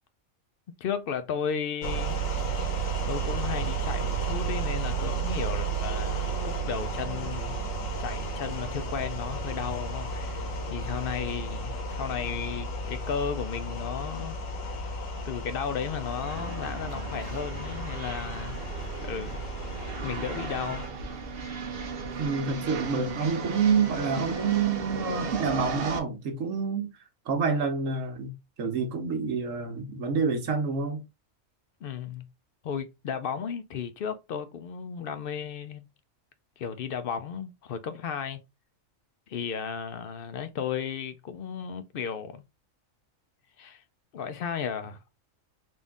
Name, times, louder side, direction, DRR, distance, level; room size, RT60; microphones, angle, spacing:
voice 1, 0.8-2.2 3.1-7.6 8.0-14.4 15.2-18.6 19.0-19.4 20.0-20.9 31.8-32.3 32.6-35.8 36.6-38.4 39.3-42.4 43.6-43.8 44.1-45.0, left 7 dB, 65° left, 0.6 m, -34 dB
sound 1, 1.8-20.9, right 3 dB, 85° left, 1.5 m, -33 dB
sound 2, 15.9-26.0, right 5 dB, 55° right, 0.9 m, -36 dB
voice 2, 22.2-26.9 27.3-28.3 28.6-31.0, right 5 dB, 75° right, 1.3 m, -28 dB
3.7 x 2.6 x 3.5 m
omnidirectional pair, 1.4 m